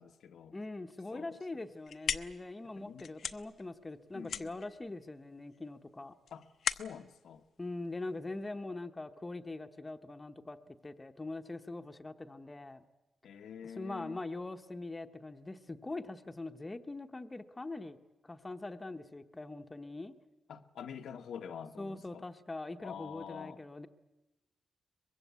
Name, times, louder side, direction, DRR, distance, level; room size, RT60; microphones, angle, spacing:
voice 1, 0.0-0.6 1.1-1.4 2.8-3.1 4.1-4.6 6.3-7.4 13.2-14.2 20.5-22.2 22.8-23.6, left 7 dB, 80° left, 1.1 m, -47 dB
voice 2, 0.5-6.1 7.6-12.8 13.6-18.0 18.2-20.1 21.8-23.9, left 2 dB, 15° left, 1.0 m, -42 dB
sound 1, 1.6-8.5, left 7 dB, 60° left, 0.8 m, -40 dB
23.0 x 22.0 x 8.3 m
wide cardioid pair, 160°, 0 cm